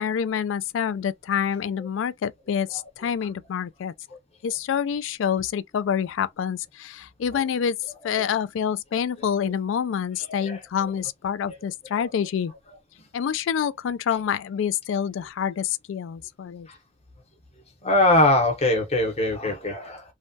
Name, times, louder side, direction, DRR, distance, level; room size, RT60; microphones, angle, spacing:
voice 1, 0.0-3.9 4.4-7.8 8.0-12.5 13.1-16.7, left 8 dB, 75° left, 0.3 m, -27 dB
voice 2, 17.8-20.0, left 2 dB, 30° left, 0.8 m, -21 dB
3.1 x 2.2 x 2.7 m
head